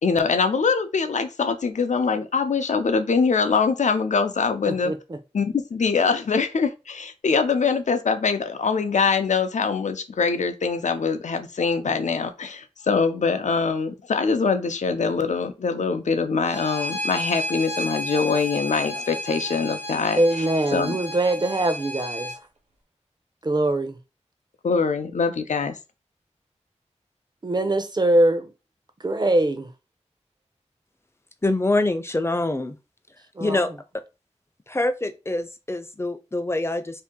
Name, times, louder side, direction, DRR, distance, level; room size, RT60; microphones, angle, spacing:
voice 1, 0.0-4.9 5.3-20.5 20.7-21.0 24.6-25.8, left 5 dB, 90° left, 0.5 m, -23 dB
voice 2, 4.7-5.2 20.2-22.3 23.4-24.0 27.4-28.5 29.0-29.7 33.4-33.6, right 1 dB, 35° right, 0.6 m, -22 dB
Bowed string instrument, 16.4-22.4, left 1 dB, 80° right, 1.0 m, -32 dB
voice 3, 31.4-32.8 33.4-34.0 34.7-37.0, left 2 dB, 20° left, 0.5 m, -25 dB
2.7 x 2.5 x 3.6 m
wide cardioid pair, 50°, 12 cm